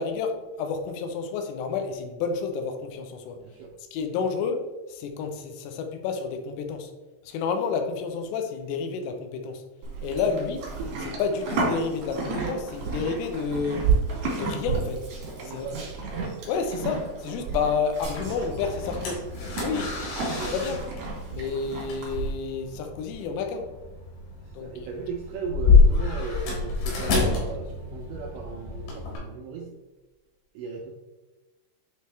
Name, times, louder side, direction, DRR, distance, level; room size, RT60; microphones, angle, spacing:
voice 1, 0.0-3.4 3.9-4.6 4.9-6.9 7.2-9.6 10.0-10.6 11.0-13.9 14.3-15.0 15.5-15.7 16.5-19.2 19.6-19.9 20.4-20.8 21.3-23.7 24.6-24.7, left 5 dB, 85° left, 5 dB, 3.3 m, -30 dB
voice 2, 3.3-3.7 10.3-10.6 15.3-15.9 24.4-29.7 30.5-30.9, right 5 dB, 85° right, 1 dB, 2.5 m, -37 dB
Livestock farm animals working animals, 9.8-22.3, right 4 dB, 65° right, 1.5 m, -32 dB
sound 1, 18.0-29.2, left 4 dB, 70° left, 3.9 m, -27 dB
9.3 x 3.4 x 3.2 m, 1.1 s
omnidirectional pair, 5.7 m